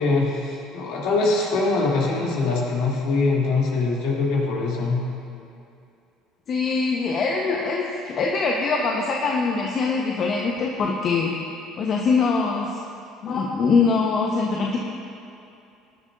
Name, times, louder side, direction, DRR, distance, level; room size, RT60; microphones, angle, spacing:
voice 1, 0.0-5.0, left 3 dB, 65° left, -4 dB, 3.1 m, -23 dB
voice 2, 6.5-11.3 11.8-12.8 13.2-14.8, left 4 dB, 45° left, -1 dB, 1.2 m, -23 dB
20.0 x 11.0 x 2.7 m, 2.6 s
hypercardioid pair, 60°, 0 cm